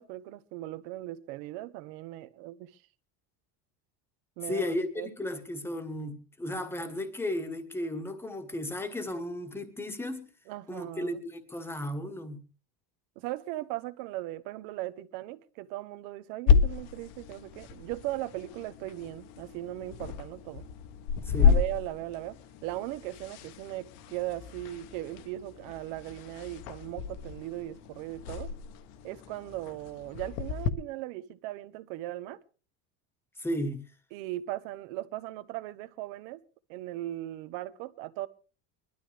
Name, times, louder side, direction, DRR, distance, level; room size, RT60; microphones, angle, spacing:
voice 1, 0.0-2.8 4.4-4.7 5.0-5.1 10.5-11.2 13.2-20.6 21.4-22.4 22.6-28.5 29.0-32.4 34.1-36.4 36.7-38.3, right 15 dB, 65° right, 1.2 m, -38 dB
voice 2, 4.5-10.3 10.7-12.4 21.2-21.6 33.4-33.8, left 1 dB, 5° left, 1.3 m, -34 dB
sound 1, 16.5-30.7, left 6 dB, 70° left, 1.3 m, -31 dB
22.0 x 12.5 x 3.4 m
cardioid pair, 175°, 42 cm